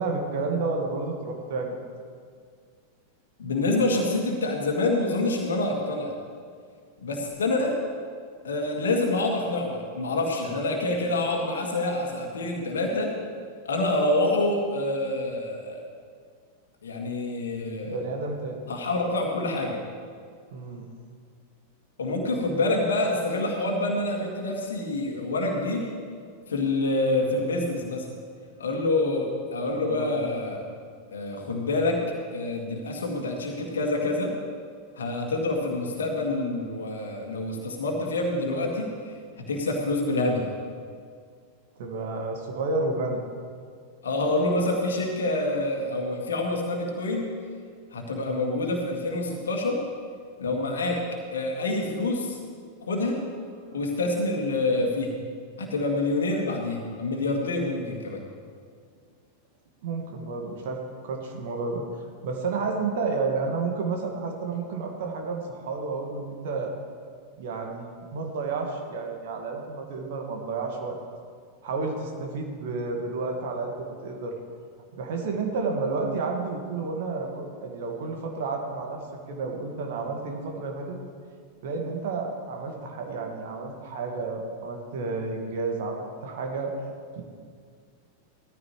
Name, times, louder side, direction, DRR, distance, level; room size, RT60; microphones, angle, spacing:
voice 1, 0.0-1.7 17.8-18.6 20.5-20.9 29.7-30.2 41.8-43.2 53.7-53.8 59.8-61.8 62.2-66.7 67.4-71.0 71.6-74.4 74.9-79.0 79.3-81.0 81.6-86.7 87.2-87.3, right 4 dB, 55° right, 2 dB, 1.9 m, -31 dB
voice 2, 3.4-6.1 7.0-7.8 8.4-13.1 13.7-15.8 16.8-18.0 18.7-19.8 22.0-25.9 26.5-28.1 28.6-30.6 31.1-32.0 32.3-34.4 35.0-40.5 44.0-47.3 47.9-49.8 50.4-51.0 51.3-52.4 52.8-53.2 53.7-55.2 55.6-58.2, left 2 dB, 65° left, 0 dB, 2.0 m, -27 dB
17.5 x 14.0 x 3.3 m, 2.1 s
figure-of-eight pair, 90°, 0 cm